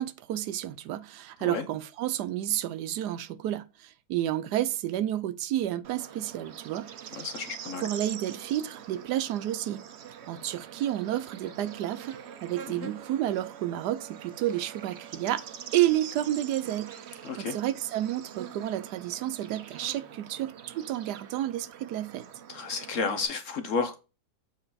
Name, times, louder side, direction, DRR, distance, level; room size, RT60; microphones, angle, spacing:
voice 1, 0.0-6.9 7.8-9.8 10.3-12.2 12.4-15.4 15.7-22.2, right 13 dB, 75° right, 1.1 m, -30 dB
Bird / Insect, 5.8-23.2, right 9 dB, 60° right, 0.7 m, -44 dB
voice 2, 7.2-7.9 12.7-12.9 17.2-17.6 22.5-24.0, left 5 dB, 60° left, 0.9 m, -32 dB
7.7 x 4.6 x 4.1 m
omnidirectional pair, 1.8 m